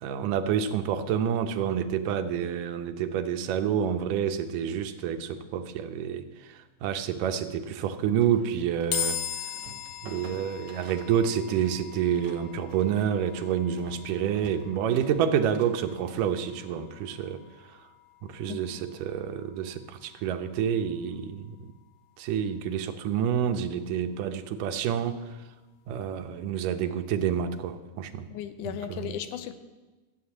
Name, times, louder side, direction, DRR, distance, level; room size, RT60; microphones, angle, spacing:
voice 1, 0.0-9.5 10.0-17.8 18.2-21.7 22.2-25.2 25.9-28.3 28.6-29.2, right 8 dB, 85° right, 8 dB, 2.4 m, -28 dB
sound 1, 8.2-9.2 9.5-11.7 12.0-16.4, right 4 dB, 65° right, 2.6 m, -49 dB
sound 2, 8.9-22.2, left 9 dB, 60° left, 1.5 m, -41 dB
voice 2, 28.3-29.6, left 10 dB, 80° left, 10 dB, 2.2 m, -36 dB
13.0 x 8.0 x 8.6 m, 1.2 s
omnidirectional pair, 3.7 m